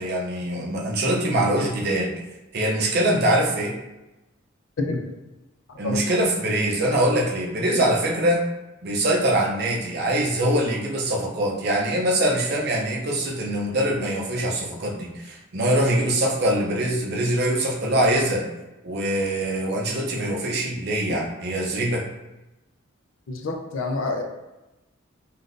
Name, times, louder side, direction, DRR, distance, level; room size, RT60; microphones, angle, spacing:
voice 1, 0.0-2.1 2.5-3.8 5.8-8.5 8.8-18.5 18.8-22.1, right 1 dB, 50° right, -1 dB, 0.5 m, -23 dB
voice 2, 23.3-24.2, left 3 dB, 75° left, 4 dB, 0.5 m, -27 dB
3.6 x 2.4 x 2.5 m, 1.0 s
head